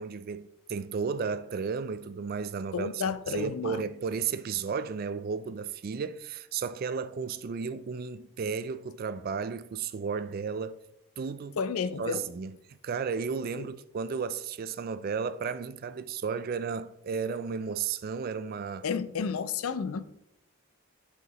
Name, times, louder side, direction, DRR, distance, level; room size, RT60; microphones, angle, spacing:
voice 1, 0.0-10.8 11.2-11.6 12.0-18.9, right 5 dB, 45° right, 0.3 m, -33 dB
voice 2, 2.7-3.8 11.6-12.2 13.5-13.6 18.8-20.0, left 6 dB, 80° left, 0.5 m, -31 dB
10.5 x 4.9 x 3.0 m
head